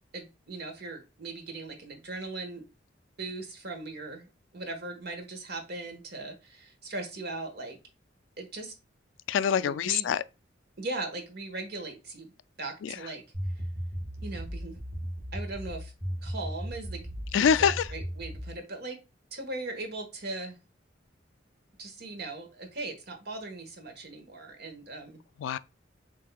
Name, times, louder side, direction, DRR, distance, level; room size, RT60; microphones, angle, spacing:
voice 1, 0.1-2.6 3.2-7.8 8.4-8.7 9.6-10.1 10.8-12.3 12.6-13.2 14.2-14.8 15.3-15.9 16.2-19.0 19.3-20.6 21.8-25.2, right 2 dB, 60° right, 1.3 m, -39 dB
voice 2, 9.3-10.2 12.8-13.0 17.3-17.9 25.4-25.6, left 8 dB, 75° left, 0.3 m, -25 dB
sound 1, 13.3-18.6, equal, 30° right, 2.1 m, -36 dB
7.4 x 2.7 x 2.2 m
head